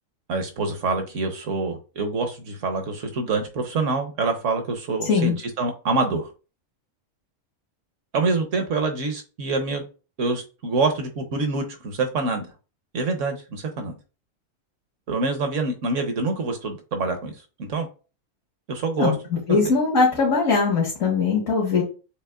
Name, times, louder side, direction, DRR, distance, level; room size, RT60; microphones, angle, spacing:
voice 1, 0.3-6.3 8.1-9.8 10.2-12.5 12.9-13.9 15.1-17.3 17.6-17.9 18.7-19.1 19.5-19.7, right 3 dB, 70° right, 5 dB, 1.2 m, -26 dB
voice 2, 19.5-21.8, left 4 dB, 75° left, -4 dB, 1.8 m, -20 dB
6.5 x 2.9 x 2.4 m, 0.33 s
omnidirectional pair, 1.4 m